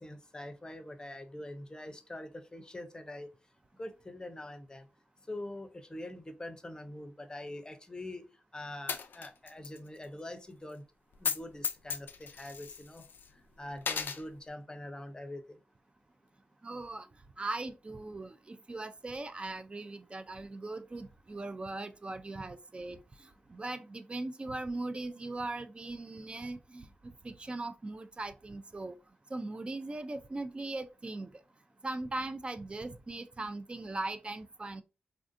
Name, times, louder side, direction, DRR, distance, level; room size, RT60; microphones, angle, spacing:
voice 1, 0.0-3.3 3.8-4.9 5.3-8.2 8.5-10.8 11.2-13.0 13.3-15.6, left 1 dB, 20° left, 0.6 m, -44 dB
Coin (dropping), 8.9-9.8 10.0-10.1 11.1-11.4 11.6-13.3 13.8-14.2, left 6 dB, 75° left, 0.3 m, -35 dB
voice 2, 16.6-17.1 17.4-26.9 27.2-29.0 29.3-31.3 31.8-34.8, right 2 dB, 30° right, 0.4 m, -39 dB
3.3 x 2.5 x 2.5 m
cardioid pair, 70°, 3 cm